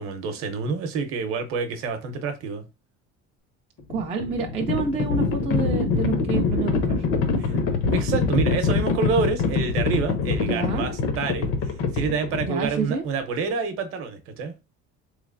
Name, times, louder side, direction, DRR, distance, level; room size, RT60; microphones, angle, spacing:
voice 1, 0.0-2.6 7.4-7.6 7.9-11.5 11.9-14.5, right 5 dB, 50° right, 0.7 m, -28 dB
Livestock farm animals working animals, 3.8-12.9, left 4 dB, 45° left, 0.6 m, -24 dB
voice 2, 3.9-7.0 10.4-10.9 12.4-13.0, right 4 dB, 20° right, 0.3 m, -28 dB
3.8 x 3.1 x 2.5 m
cardioid pair, 170°, 29 cm